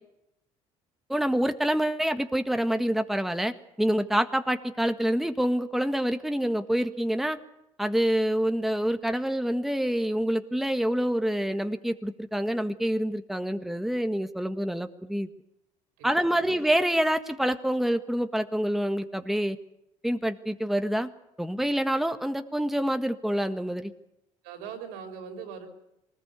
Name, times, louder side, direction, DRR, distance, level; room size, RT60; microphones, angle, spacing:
voice 1, 1.1-7.4 7.8-15.3 16.0-19.6 20.0-21.1 21.4-23.9, equal, ahead, 8 dB, 1.7 m, -27 dB
voice 2, 16.0-16.6 24.4-25.7, right 7 dB, 75° right, 5 dB, 5.4 m, -41 dB
23.5 x 19.5 x 8.4 m, 0.85 s
hypercardioid pair, 65°, 16 cm